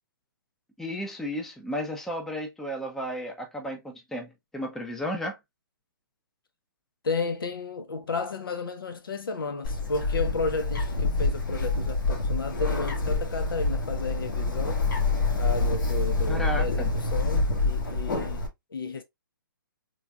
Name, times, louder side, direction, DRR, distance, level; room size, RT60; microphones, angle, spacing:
voice 1, 0.8-5.4 16.3-16.9, equal, 5° left, 0.6 m, -33 dB
voice 2, 7.0-14.8 15.4-19.0, left 4 dB, 80° left, 0.9 m, -33 dB
Bird, 9.6-18.5, left 3 dB, 65° left, 1.8 m, -27 dB
3.8 x 3.3 x 2.3 m
hypercardioid pair, 150°, 12 cm